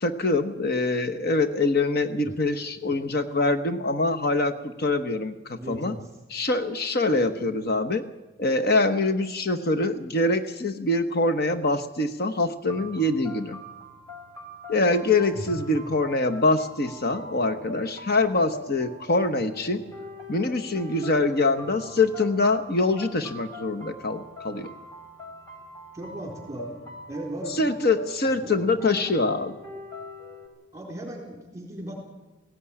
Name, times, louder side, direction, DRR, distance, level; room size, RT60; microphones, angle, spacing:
voice 1, 0.0-5.9 6.3-8.0 8.4-13.6 14.7-19.8 20.3-24.7 27.6-29.5, left 2 dB, 50° left, 9 dB, 1.0 m, -24 dB
voice 2, 5.6-6.1 15.3-15.9 25.9-26.8 27.1-27.6 28.4-28.7 30.7-32.0, right 1 dB, 15° right, 0 dB, 4.2 m, -37 dB
sound 1, 12.7-30.5, left 1 dB, 15° left, 4.3 m, -43 dB
17.0 x 16.5 x 9.8 m, 1.1 s
head